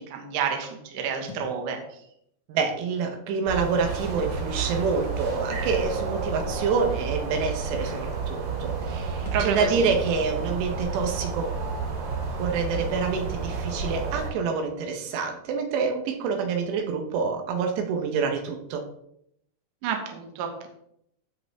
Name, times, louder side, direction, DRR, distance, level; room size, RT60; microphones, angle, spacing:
voice 1, 0.0-2.0 9.3-9.8 19.8-20.7, right 6 dB, 65° right, 3 dB, 2.5 m, -30 dB
Thump thud, 1.3-1.5 2.6-2.7 4.0-4.4 4.8-4.9 6.5-6.7 7.4-7.5 7.8-8.0 9.2-9.5, left 4 dB, 50° left, 1.2 m, -44 dB
voice 2, 2.5-11.6 12.4-18.8, right 5 dB, 80° right, 4 dB, 3.2 m, -27 dB
sound 1, 3.5-14.3, right 4 dB, 40° right, 2.7 m, -31 dB
15.0 x 5.3 x 3.5 m, 0.74 s
omnidirectional pair, 4.9 m